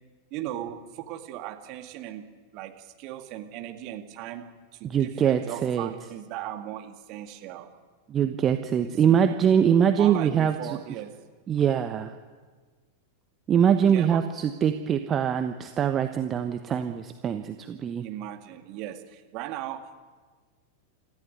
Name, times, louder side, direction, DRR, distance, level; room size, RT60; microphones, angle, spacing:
voice 1, 0.3-2.3 2.5-4.5 4.7-7.7 8.8-9.2 10.0-11.2 13.9-14.2 18.0-19.9, right 12 dB, 40° right, 5 dB, 2.1 m, -38 dB
voice 2, 4.8-5.9 8.1-10.8 11.5-12.2 13.5-18.1, right 8 dB, 25° right, 7 dB, 1.1 m, -23 dB
25.5 x 14.5 x 9.4 m, 1.5 s
figure-of-eight pair, 90°, 0 cm